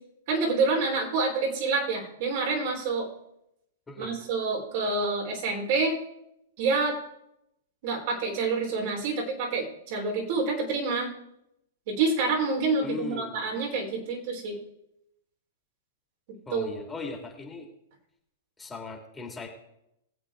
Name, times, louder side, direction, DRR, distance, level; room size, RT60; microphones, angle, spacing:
voice 1, 0.3-3.1 4.0-6.0 6.6-6.9 7.8-11.1 11.9-14.6 16.5-16.8, right 4 dB, 55° right, -1 dB, 4.5 m, -27 dB
voice 2, 12.8-13.4 16.5-17.7 18.6-19.5, left 4 dB, 10° left, 1 dB, 2.5 m, -38 dB
20.5 x 8.0 x 3.9 m, 0.83 s
hypercardioid pair, 130°, 0 cm